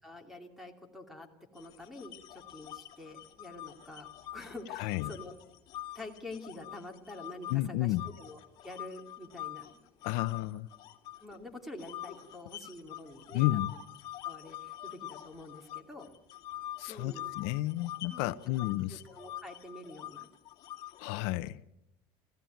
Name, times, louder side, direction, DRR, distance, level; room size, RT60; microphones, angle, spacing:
voice 1, 0.0-4.1 4.3-5.3 5.9-9.8 11.2-13.7 14.2-16.1 16.9-17.4 18.1-18.4 18.9-20.3, left 2 dB, ahead, 2.7 m, -47 dB
sound 1, 1.5-7.6 7.9-11.4 11.8-21.2, left 13 dB, 40° left, 2.4 m, -44 dB
voice 2, 4.7-5.1 7.5-8.0 10.0-10.7 13.3-13.7 16.8-19.0 21.0-21.6, left 17 dB, 75° left, 0.8 m, -32 dB
28.0 x 16.0 x 9.3 m
cardioid pair, 175°, 11 cm